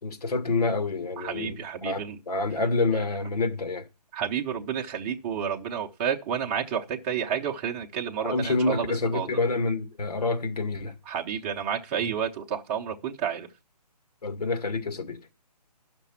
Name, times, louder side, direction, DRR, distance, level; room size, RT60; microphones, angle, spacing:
voice 1, 0.0-3.8 8.2-10.9 14.2-15.2, left 3 dB, 65° left, 2.1 m, -27 dB
voice 2, 1.2-2.2 4.1-9.3 11.1-13.5, right 8 dB, 20° right, 0.8 m, -30 dB
11.5 x 6.1 x 5.7 m
figure-of-eight pair, 145°, 21 cm